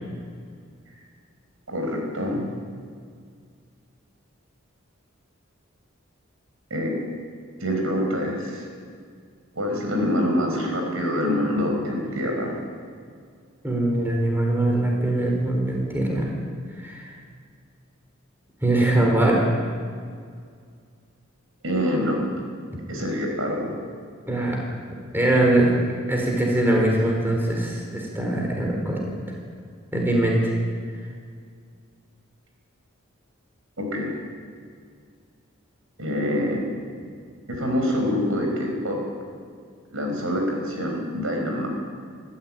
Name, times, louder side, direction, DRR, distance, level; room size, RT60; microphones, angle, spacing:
voice 1, 1.7-2.5 6.7-7.0 7.6-8.7 9.5-12.6 21.6-22.2 22.9-23.7 33.8-34.2 36.0-36.7 37.6-39.0 39.9-41.7, equal, 80° right, 1 dB, 5.3 m, -25 dB
voice 2, 13.6-16.3 16.8-17.1 18.6-19.4 24.3-24.6 25.1-25.7 26.1-29.1 29.9-30.5, right 1 dB, 10° right, -1 dB, 4.0 m, -22 dB
20.5 x 14.0 x 9.0 m, 2.1 s
head